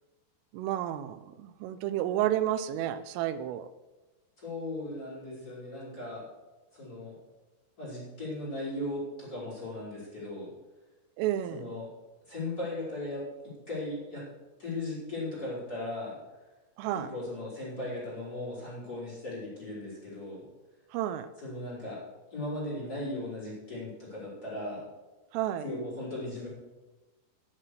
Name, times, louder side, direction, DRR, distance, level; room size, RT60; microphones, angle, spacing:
voice 1, 0.5-3.7 11.2-11.7 16.8-17.1 20.9-21.3 25.3-25.7, right 12 dB, 90° right, 13 dB, 3.2 m, -31 dB
voice 2, 4.4-6.2 6.7-7.2 7.8-10.5 11.5-11.9 12.3-14.3 14.6-16.2 16.9-20.4 21.4-22.0 22.3-24.8 25.6-26.5, left 1 dB, 20° left, -7 dB, 5.4 m, -37 dB
11.5 x 10.0 x 6.4 m, 1.1 s
omnidirectional pair, 5.8 m